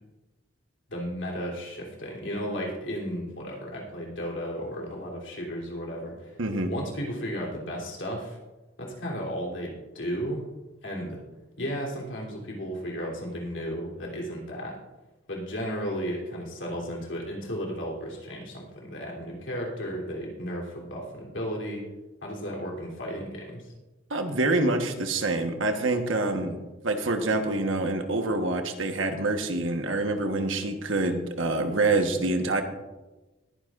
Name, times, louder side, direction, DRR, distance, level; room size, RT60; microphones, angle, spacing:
voice 1, 0.9-6.4 6.7-8.4 8.8-10.5 10.8-11.2 11.6-14.8 15.3-21.9 22.2-23.7, equal, 65° left, -2 dB, 3.2 m, -34 dB
voice 2, 6.4-6.7 24.1-26.6 26.8-32.6, right 2 dB, 70° right, 5 dB, 1.2 m, -26 dB
20.5 x 9.9 x 2.5 m, 1.1 s
head